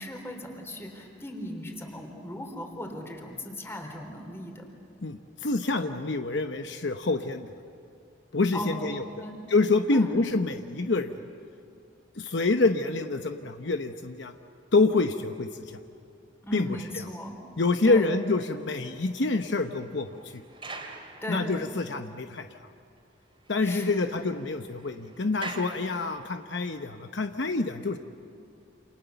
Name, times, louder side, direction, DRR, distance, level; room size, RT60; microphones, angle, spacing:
voice 1, 0.0-4.6 8.5-8.9 9.2-9.4 9.9-10.2 16.4-17.3 17.8-18.1 21.2-21.5 23.6-24.2, left 1 dB, 15° left, 3 dB, 3.8 m, -37 dB
voice 2, 5.0-7.5 8.3-9.0 9.5-11.2 12.2-14.3 14.7-15.8 16.5-17.0 17.6-20.4 21.3-22.5 23.5-28.0, left 3 dB, 65° left, 6 dB, 0.9 m, -27 dB
sound 1, 18.5-22.0 22.5-22.6 23.0-23.1 23.3-26.6, right 3 dB, 30° right, 3.0 m, -45 dB
29.0 x 28.0 x 7.0 m, 2.5 s
head